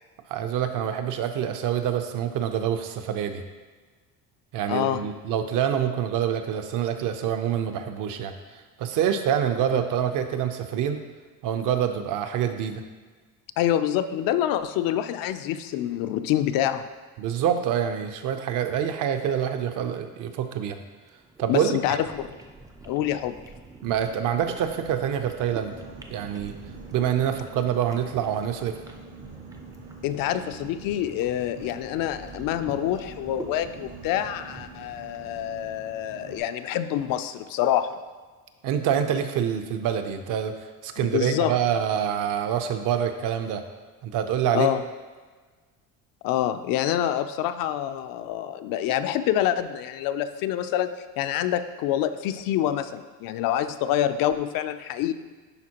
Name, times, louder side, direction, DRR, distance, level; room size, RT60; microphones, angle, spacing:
voice 1, 0.3-3.4 4.5-8.3 8.8-11.0 11.4-12.8 17.2-20.8 21.4-22.0 23.8-25.7 26.1-26.5 26.9-28.8 38.6-40.5 40.8-43.6 44.0-44.7, right 9 dB, 60° right, 7 dB, 0.7 m, -26 dB
voice 2, 4.7-5.0 13.6-16.9 21.5-22.3 22.9-23.4 30.0-37.9 41.0-41.5 44.5-44.8 46.2-50.9 51.2-55.1, left 11 dB, 65° left, 10 dB, 0.5 m, -26 dB
sound 1, 21.0-36.3, right 3 dB, 10° right, 0.4 m, -46 dB
Boat Water vehicle, 25.4-36.4, right 4 dB, 85° right, 2.2 m, -46 dB
11.0 x 4.4 x 2.9 m, 1.4 s
cardioid pair, 145°, 37 cm